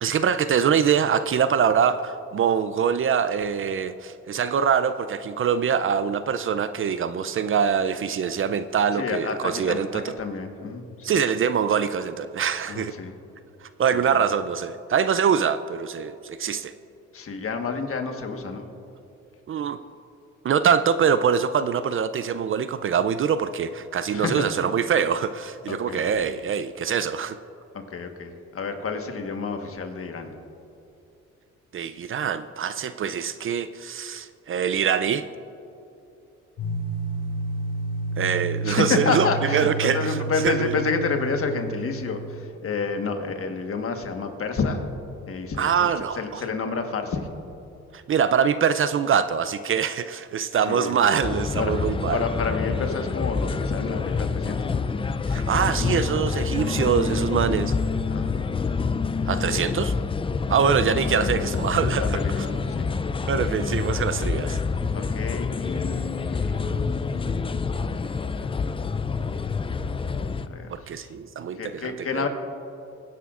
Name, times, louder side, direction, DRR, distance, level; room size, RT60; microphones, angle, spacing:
voice 1, 0.0-10.1 11.0-12.9 13.8-16.7 19.5-19.8 20.4-27.4 31.7-35.3 38.2-40.7 45.6-46.4 47.9-52.2 55.3-57.7 59.3-59.9 60.5-62.2 63.3-64.6 70.7-72.2, right 7 dB, 45° right, 12 dB, 0.5 m, -24 dB
voice 2, 8.9-11.1 12.7-13.1 14.1-14.2 17.1-18.7 24.1-24.5 25.7-26.0 27.7-30.3 38.6-44.8 45.3-47.3 50.6-50.9 51.6-51.8 52.1-54.8 58.1-58.4 59.5-59.7 61.1-61.5 62.0-62.9 64.9-67.5 68.8-69.3 70.5-71.1 71.5-72.3, left 4 dB, 45° left, 5 dB, 1.4 m, -29 dB
sound 1, 36.6-42.4, right 2 dB, 85° left, 2.5 m, -30 dB
sound 2, 51.2-70.5, left 5 dB, 20° left, 0.4 m, -27 dB
22.0 x 10.0 x 2.5 m, 2.8 s
cardioid pair, 90°, 30 cm